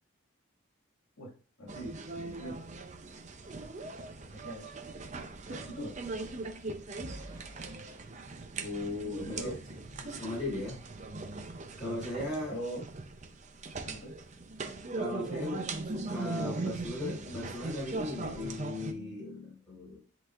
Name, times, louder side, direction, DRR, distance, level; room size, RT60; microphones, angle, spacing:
voice 1, 1.6-2.5 4.3-4.7 5.5-6.4 9.0-9.6 12.2-12.9 13.8-14.1, right 1 dB, 75° left, 1 dB, 2.1 m, -42 dB
sound 1, 1.7-18.9, right 3 dB, 35° right, 0.5 m, -40 dB
sound 2, 7.0-9.9 10.4-10.6 11.0-11.2, equal, 20° right, 1.0 m, -56 dB
voice 2, 8.6-9.5 10.0-10.8 11.8-12.6 14.9-20.0, left 2 dB, 20° left, -8 dB, 3.4 m, -38 dB
10.0 x 4.0 x 2.5 m, 0.37 s
head